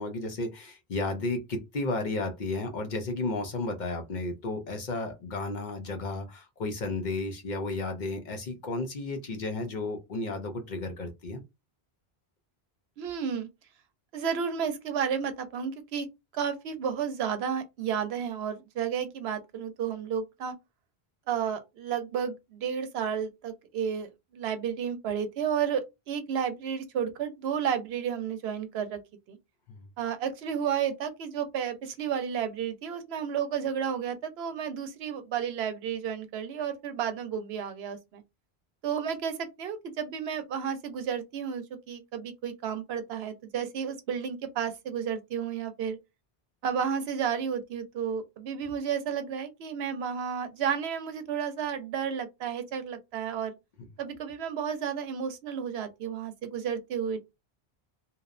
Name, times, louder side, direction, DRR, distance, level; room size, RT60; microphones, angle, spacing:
voice 1, 0.0-11.4 29.7-29.8, left 2 dB, 55° left, 0.6 m, -33 dB
voice 2, 13.0-13.5 14.1-16.1 16.3-20.5 21.3-29.0 29.3-29.4 30.0-38.2 38.8-46.0 46.6-53.5 54.0-57.2, right 7 dB, 90° right, 0.8 m, -32 dB
2.7 x 2.0 x 2.4 m
omnidirectional pair, 1.0 m